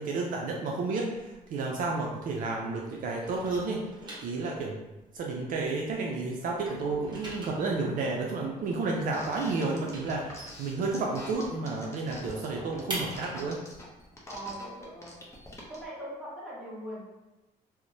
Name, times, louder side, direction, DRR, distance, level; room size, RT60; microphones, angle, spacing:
voice 1, 0.0-3.9 4.2-4.8 5.1-13.6, right 3 dB, 60° right, 0 dB, 0.4 m, -31 dB
sound 1, 1.2-2.6 2.9-6.1 6.4-11.4 11.7-11.8 12.1-15.8, right 1 dB, 30° right, 1.1 m, -43 dB
sound 2, 9.1-15.8, left 2 dB, 15° left, 0.6 m, -45 dB
voice 2, 14.3-15.2 15.6-17.0, right 1 dB, ahead, -9 dB, 1.3 m, -41 dB
2.8 x 2.0 x 2.6 m, 1.0 s
cardioid pair, 95°, 16 cm